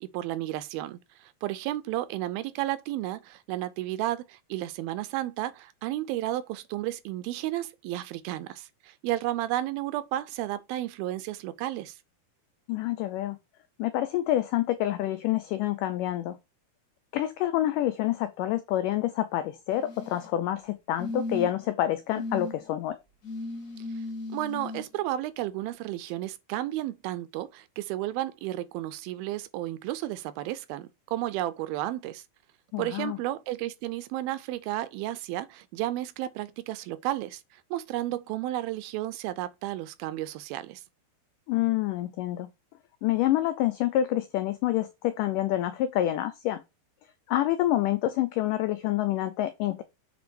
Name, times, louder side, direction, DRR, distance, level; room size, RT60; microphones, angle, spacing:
voice 1, 0.0-12.0 23.8-24.0 24.3-32.2 32.8-40.8, right 14 dB, 80° right, 2.3 m, -33 dB
voice 2, 12.7-13.4 13.8-16.4 17.1-23.0 32.7-33.2 41.5-42.5 43.0-46.6 47.3-49.8, left 13 dB, 85° left, 1.8 m, -27 dB
sound 1, 19.7-20.3 21.0-21.7 22.1-22.5 23.2-24.8 26.1-26.2, left 2 dB, 40° left, 1.2 m, -36 dB
8.3 x 4.1 x 4.5 m
omnidirectional pair, 4.5 m